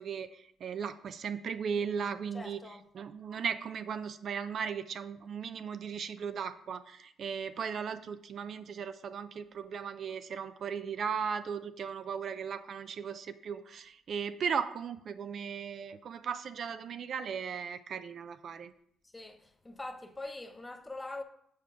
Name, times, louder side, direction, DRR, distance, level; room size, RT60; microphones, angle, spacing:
voice 1, 0.0-2.6 2.9-18.7, right 6 dB, 60° right, 0.4 m, -37 dB
voice 2, 2.3-2.8 19.0-21.2, left 2 dB, 15° left, 0.8 m, -43 dB
7.3 x 4.5 x 5.6 m
cardioid pair, 90°, 0 cm